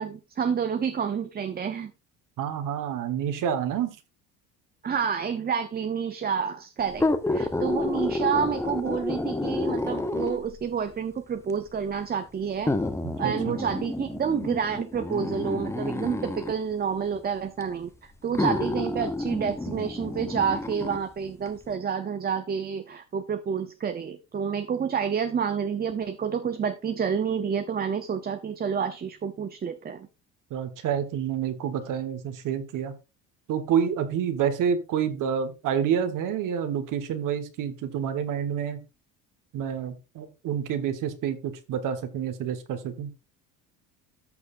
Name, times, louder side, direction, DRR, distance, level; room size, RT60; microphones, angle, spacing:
voice 1, 0.0-1.9 4.8-12.7 13.2-30.1, right 7 dB, 25° right, 0.7 m, -29 dB
voice 2, 2.4-3.9 13.0-13.5 30.5-32.9 33.5-38.8 39.5-43.1, right 8 dB, 60° right, 1.5 m, -28 dB
sound 1, 6.9-10.6 11.5-11.6 12.7-16.6 17.6-17.7 18.3-21.0 21.5-21.6, left 2 dB, 10° left, 0.8 m, -29 dB
13.5 x 6.3 x 2.6 m
cardioid pair, 110°, 35 cm